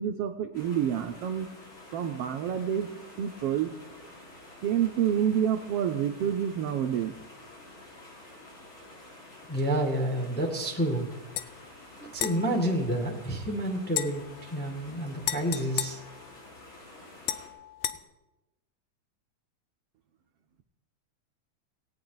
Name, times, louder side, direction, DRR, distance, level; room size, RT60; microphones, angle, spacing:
voice 1, 0.0-1.5 1.9-2.9 3.2-3.7 4.6-7.1, right 9 dB, 80° right, 6 dB, 1.3 m, -28 dB
sound 1, 0.5-17.5, left 2 dB, 40° left, 5.3 m, -49 dB
voice 2, 9.5-11.1 12.0-16.0, right 1 dB, 5° left, 3 dB, 1.2 m, -29 dB
sound 2, 11.3-11.5 12.1-13.4 13.9-16.8 17.2-18.0, left 12 dB, 80° left, 2.2 m, -36 dB
18.0 x 17.5 x 4.0 m, 0.98 s
omnidirectional pair, 3.7 m